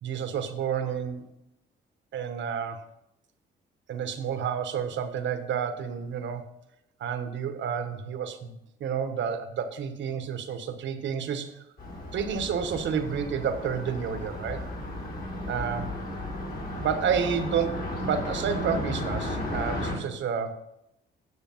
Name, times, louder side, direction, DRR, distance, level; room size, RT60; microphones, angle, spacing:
voice 1, 0.0-1.3 2.1-2.8 3.9-6.4 7.0-11.6 12.1-14.7 15.5-15.9 16.8-20.6, right 7 dB, 70° right, 8 dB, 1.2 m, -30 dB
Car passing by, 11.8-20.0, left 1 dB, 50° left, 4.1 m, -34 dB
9.7 x 6.6 x 5.6 m, 0.84 s
cardioid pair, 90°, 20 cm